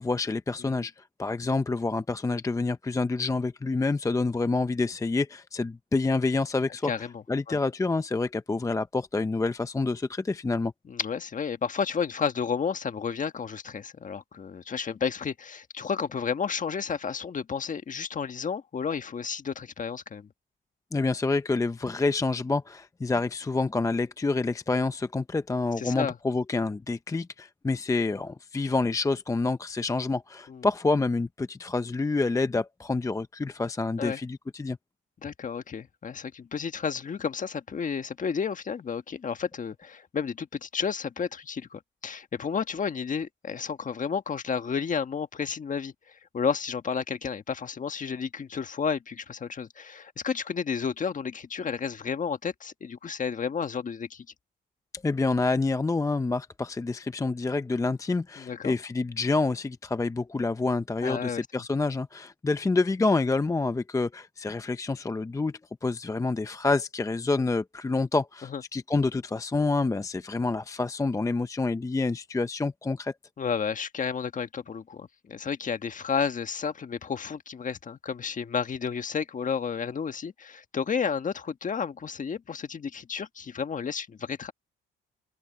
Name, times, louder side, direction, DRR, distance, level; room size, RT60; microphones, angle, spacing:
voice 1, 0.0-6.9 7.3-10.7 20.9-34.8 54.9-73.1, left 3 dB, 15° left, 0.6 m, -28 dB
voice 2, 6.8-7.6 10.9-20.3 25.8-26.2 30.5-30.7 34.0-34.2 35.2-54.2 58.4-58.7 61.0-61.5 68.4-68.6 73.4-84.5, left 6 dB, 40° left, 1.5 m, -32 dB
cardioid pair, 90°, 20 cm